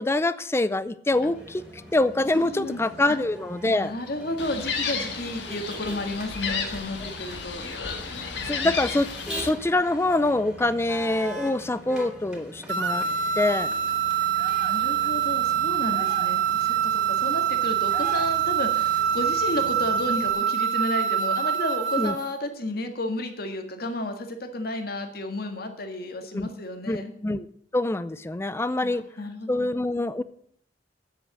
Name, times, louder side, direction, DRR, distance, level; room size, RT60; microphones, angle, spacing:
voice 1, 0.0-1.6 1.9-3.9 7.1-7.2 8.4-9.1 9.4-13.1 13.4-13.7 22.0-22.1 26.3-26.5 26.9-27.5 27.7-29.1 29.5-30.2, left 2 dB, 15° left, 14 dB, 0.4 m, -25 dB
Motor vehicle (road), 1.1-20.3, right 1 dB, 5° right, 3.2 m, -42 dB
voice 2, 2.3-2.8 3.6-7.7 8.4-8.8 14.4-27.1 28.8-29.7, left 1 dB, 55° left, 5 dB, 1.8 m, -32 dB
Gull seagull, 4.4-9.5, left 5 dB, 75° left, 1.7 m, -32 dB
sound 1, 12.7-22.3, right 9 dB, 75° right, 1.0 m, -25 dB
9.4 x 7.9 x 7.7 m, 0.64 s
head